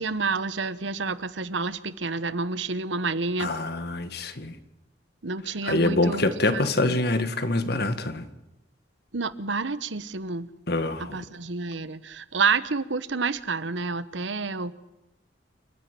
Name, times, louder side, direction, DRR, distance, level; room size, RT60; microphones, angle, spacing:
voice 1, 0.0-3.6 5.2-6.2 6.5-7.0 9.1-10.5 11.0-14.7, right 4 dB, 85° right, 15 dB, 1.1 m, -29 dB
voice 2, 3.4-4.6 5.6-8.3 10.7-11.2, left 2 dB, 60° left, 10 dB, 1.8 m, -25 dB
29.0 x 10.5 x 9.2 m, 0.99 s
head